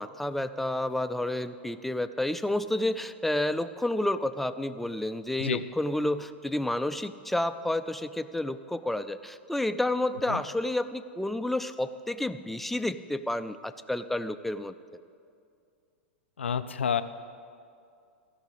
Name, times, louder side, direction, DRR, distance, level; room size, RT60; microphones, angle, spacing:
voice 1, 0.0-14.7, left 1 dB, 5° left, 11 dB, 0.4 m, -30 dB
voice 2, 16.4-17.0, left 7 dB, 80° left, 12 dB, 0.4 m, -29 dB
14.0 x 5.9 x 8.6 m, 2.4 s
figure-of-eight pair, 95°, 6 cm